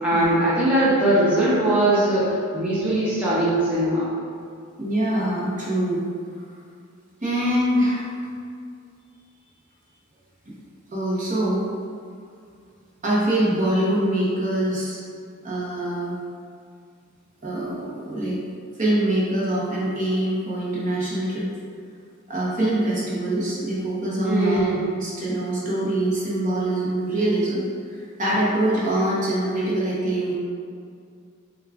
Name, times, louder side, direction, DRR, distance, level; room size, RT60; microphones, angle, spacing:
voice 1, 0.0-2.2 2.5-4.0 24.3-24.8, right 1 dB, 5° right, -11 dB, 0.7 m, -20 dB
voice 2, 4.8-6.0 7.2-8.1 10.9-11.7 13.0-15.0 15.4-16.2 17.4-18.4 18.8-21.5 22.3-24.6 25.0-27.6 27.9-30.4, right 1 dB, 35° right, -7 dB, 0.8 m, -24 dB
6.4 x 2.4 x 2.4 m, 2.3 s
head